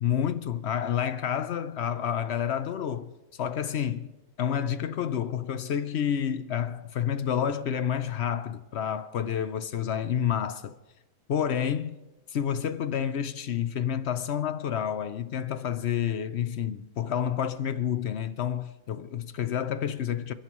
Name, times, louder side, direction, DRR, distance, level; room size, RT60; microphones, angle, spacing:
voice 1, 0.0-3.1 3.4-4.1 4.4-10.7 11.3-12.0 12.3-20.3, left 9 dB, 60° left, 0.7 m, -29 dB
28.0 x 11.5 x 3.1 m
omnidirectional pair, 1.6 m